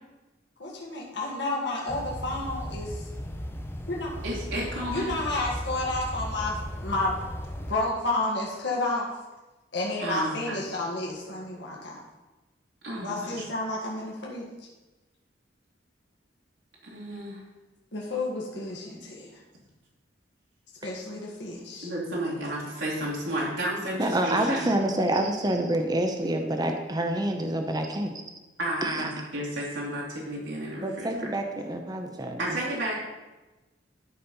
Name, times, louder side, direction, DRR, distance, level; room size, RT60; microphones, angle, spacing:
voice 1, 0.6-3.0 3.9-4.1 4.9-7.3 7.7-9.1 9.7-12.0 12.9-14.5 17.9-19.3 20.8-21.9 32.6-32.8, left 2 dB, 65° left, -3 dB, 1.8 m, -31 dB
sound 1, 1.9-7.7, equal, 15° left, 0.8 m, -36 dB
voice 2, 4.2-5.2 10.0-10.6 12.8-13.4 16.8-17.4 21.8-24.7 25.1-25.2 28.6-29.1 29.3-31.2 32.4-33.0, right 1 dB, 85° right, -6 dB, 2.6 m, -32 dB
voice 3, 24.0-28.2 28.8-29.1 30.8-32.4, right 1 dB, 20° right, 4 dB, 0.8 m, -27 dB
12.5 x 4.2 x 5.5 m, 1.1 s
head